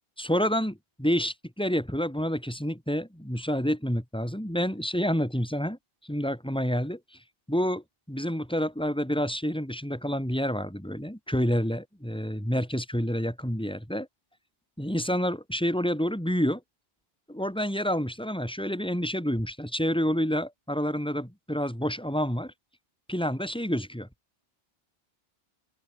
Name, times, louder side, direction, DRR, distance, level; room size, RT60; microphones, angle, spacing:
voice 1, 0.2-5.8 6.0-7.0 7.5-14.1 14.8-16.6 17.3-22.5 23.1-24.1, equal, 5° left, 6.2 m, -28 dB
open air
omnidirectional pair, 1.0 m